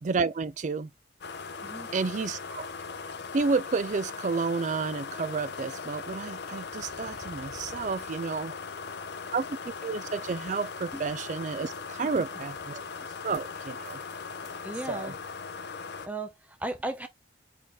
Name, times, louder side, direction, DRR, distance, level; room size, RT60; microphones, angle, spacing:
voice 1, 0.0-0.9 1.9-2.7 3.3-8.5 9.3-12.8 13.2-14.0 14.9-15.1, right 4 dB, 40° right, 0.4 m, -31 dB
sound 1, 1.2-16.1, left 5 dB, 60° left, 0.6 m, -39 dB
voice 2, 14.4-15.1 16.0-17.1, right 2 dB, 10° right, 0.7 m, -36 dB
4.1 x 3.8 x 3.1 m
head